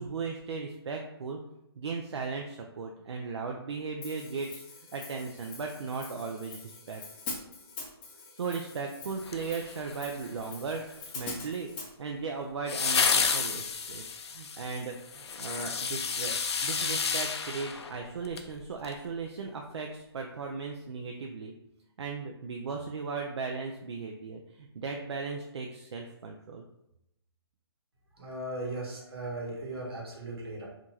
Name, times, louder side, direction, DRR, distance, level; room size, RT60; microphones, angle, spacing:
voice 1, 0.0-1.4 1.8-4.6 4.9-7.0 8.4-11.7 12.0-16.3 16.6-21.5 22.0-26.6, right 4 dB, 85° right, 2 dB, 0.4 m, -37 dB
Hi-hat, 4.0-11.9, left 3 dB, 20° left, 0.4 m, -44 dB
sound 1, 9.2-10.2 12.7-18.5 18.8-18.9, left 5 dB, 80° left, 0.4 m, -31 dB
voice 2, 28.2-30.7, right 1 dB, 65° right, -2 dB, 1.1 m, -37 dB
2.7 x 2.5 x 2.8 m, 0.84 s
hypercardioid pair, 150°, 14 cm